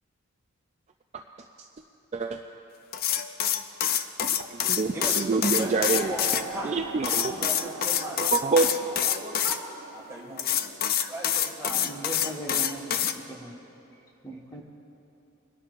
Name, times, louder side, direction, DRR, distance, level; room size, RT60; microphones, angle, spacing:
sound 1, 2.9-6.4 7.0-9.6 10.4-13.1, left 9 dB, 45° left, 0.4 m, -26 dB
voice 1, 4.2-6.1 6.6-7.5 8.2-8.7, right 4 dB, 30° right, 4 dB, 0.3 m, -26 dB
voice 2, 4.9-6.8 7.2-9.6 9.9-10.6 11.1-11.9, right 1 dB, 15° right, -3 dB, 2.0 m, -38 dB
sound 2, 5.6-11.6, right 4 dB, 85° right, 0.7 m, -42 dB
voice 3, 11.7-13.6 14.2-14.6, right 1 dB, 15° left, -2 dB, 1.2 m, -38 dB
25.0 x 11.0 x 2.5 m, 3.0 s
head